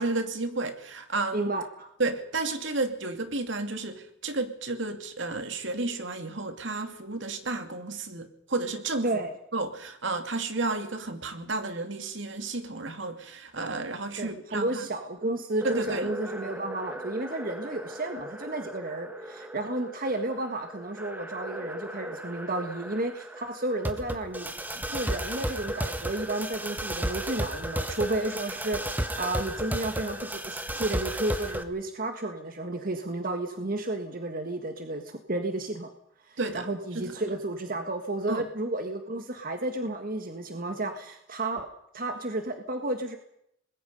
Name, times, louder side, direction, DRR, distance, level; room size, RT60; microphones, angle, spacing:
voice 1, 0.0-1.5 2.0-9.1 9.5-14.9 15.6-16.2 36.4-36.7 36.9-37.2 38.3-38.5, right 3 dB, 70° right, 7 dB, 2.4 m, -32 dB
voice 2, 1.3-1.9 9.0-9.3 14.2-35.9 36.2-41.7 41.9-43.2, right 2 dB, 45° right, 6 dB, 1.7 m, -32 dB
sound 1, 15.6-31.6, right 1 dB, 10° right, 1.4 m, -35 dB
25.5 x 21.0 x 5.4 m, 0.74 s
head